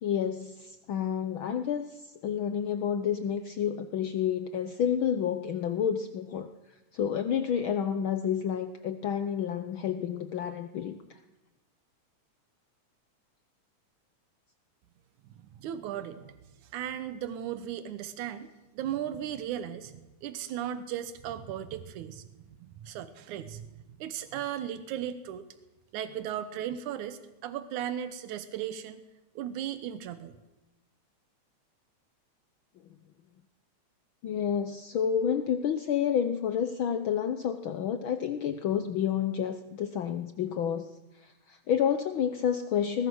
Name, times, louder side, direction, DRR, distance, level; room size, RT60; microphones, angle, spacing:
voice 1, 0.0-11.2 34.2-43.1, left 8 dB, 80° left, 10 dB, 1.1 m, -30 dB
voice 2, 15.4-16.3 16.7-18.5 18.7-23.7 24.0-25.4 25.9-29.0 29.4-30.3, right 10 dB, 90° right, 12 dB, 2.4 m, -36 dB
21.0 x 20.0 x 6.3 m, 1.0 s
omnidirectional pair, 3.4 m